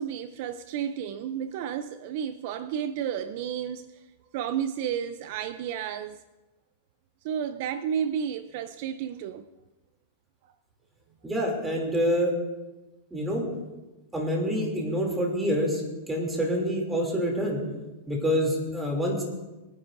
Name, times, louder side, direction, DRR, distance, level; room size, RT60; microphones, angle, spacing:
voice 1, 0.0-4.0 4.3-6.2 7.2-9.4, right 8 dB, 55° right, 0.5 m, -32 dB
voice 2, 11.2-12.3 13.1-13.4 14.1-17.6 18.1-19.2, equal, 10° right, 2.9 m, -27 dB
23.0 x 9.7 x 2.6 m
supercardioid pair, 140°, 0 cm